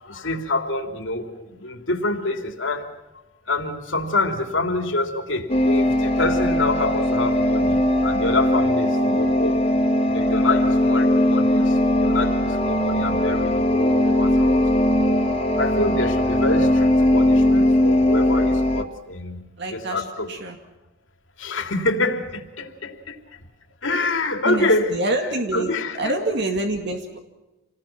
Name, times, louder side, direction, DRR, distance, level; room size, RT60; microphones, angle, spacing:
voice 1, 0.0-2.9 3.5-9.6 10.1-14.9 15.6-19.4 19.7-20.3 21.4-23.4 23.8-26.0, left 2 dB, 65° left, 5 dB, 3.1 m, -26 dB
sound 1, 5.5-18.8, left 1 dB, 30° left, 2.4 m, -19 dB
voice 2, 19.6-20.6 24.4-25.7 26.0-27.2, right 2 dB, 60° right, 4 dB, 2.2 m, -26 dB
28.0 x 20.0 x 6.0 m, 1.1 s
head